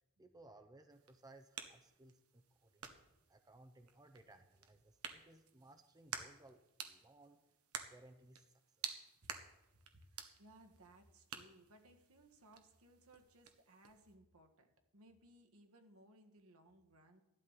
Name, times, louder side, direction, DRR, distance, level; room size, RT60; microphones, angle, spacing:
voice 1, 0.2-2.9 3.3-7.4 7.9-8.5 8.8-9.0, right 2 dB, 15° right, 6 dB, 0.6 m, -62 dB
sound 1, 0.9-14.2, right 7 dB, 90° right, 1.2 m, -52 dB
voice 2, 10.0-17.2, right 1 dB, 75° right, 4 dB, 1.6 m, -64 dB
14.5 x 11.5 x 4.1 m, 0.95 s
head